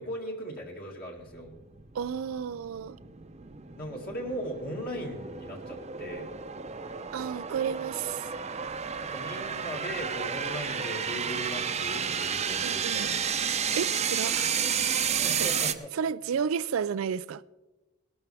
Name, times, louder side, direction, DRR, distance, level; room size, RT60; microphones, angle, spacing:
voice 1, 0.0-1.5 3.8-6.3 9.0-13.2 15.1-15.9, equal, 45° left, 2.3 m, -38 dB
sound 1, 1.2-15.7, right 7 dB, 35° right, 0.7 m, -32 dB
voice 2, 1.9-3.0 7.1-8.3 12.6-13.1 13.6-14.5 15.3-15.5 15.9-17.4, right 7 dB, 90° right, 0.4 m, -32 dB
18.5 x 12.5 x 3.5 m
head